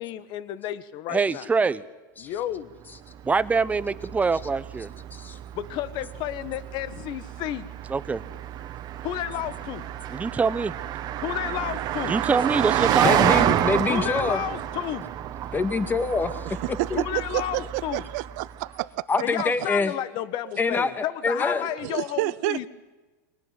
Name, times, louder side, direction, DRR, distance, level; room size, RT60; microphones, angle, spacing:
voice 1, 0.0-1.5 2.2-2.7 5.5-7.6 9.0-9.9 11.2-12.2 13.9-15.0 16.9-18.0 19.2-22.7, left 12 dB, 50° left, 14 dB, 1.5 m, -31 dB
voice 2, 1.1-1.8 3.2-4.9 7.9-8.2 10.1-10.7 12.1-13.3, right 4 dB, 15° right, 15 dB, 1.0 m, -24 dB
Car passing by, 2.9-18.6, right 11 dB, 40° right, 1.6 m, -29 dB
voice 3, 13.0-14.4 15.5-16.6 16.9-17.1 19.1-19.9 20.6-21.7, left 4 dB, 20° left, 10 dB, 2.1 m, -25 dB
voice 4, 16.4-17.1 17.3-19.0 21.6-22.7, right 20 dB, 65° right, 15 dB, 0.8 m, -29 dB
23.5 x 18.5 x 9.4 m, 1.2 s
supercardioid pair, 115°, 10 cm